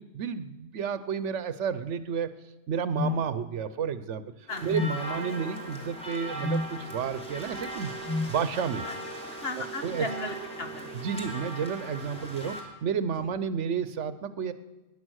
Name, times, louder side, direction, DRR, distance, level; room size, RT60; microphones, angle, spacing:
voice 1, 0.0-2.3 2.7-4.2 4.6-7.9 8.3-8.8 9.8-10.1 10.9-14.5, right 7 dB, 85° right, 13 dB, 1.1 m, -31 dB
sound 1, 2.9-3.2 4.7-5.0 6.4-6.7 8.1-8.4, left 2 dB, 25° left, 0.7 m, -29 dB
sound 2, 4.5-12.6, right 1 dB, 5° left, 3.1 m, -39 dB
voice 2, 9.3-11.0 13.2-13.3, left 2 dB, 55° left, 6 dB, 1.7 m, -37 dB
21.5 x 10.5 x 6.3 m, 1.2 s
omnidirectional pair, 1.2 m